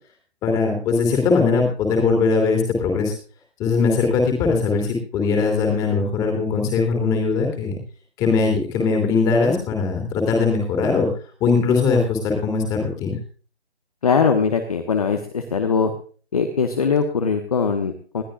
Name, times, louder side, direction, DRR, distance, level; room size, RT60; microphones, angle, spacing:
voice 1, 0.4-3.1 3.6-7.7 8.2-11.1 11.4-13.2, left 4 dB, 10° left, 2 dB, 3.0 m, -20 dB
voice 2, 14.0-15.9 16.3-18.2, left 5 dB, 35° left, 7 dB, 1.4 m, -21 dB
21.0 x 12.5 x 2.4 m, 0.40 s
figure-of-eight pair, 155°, 34 cm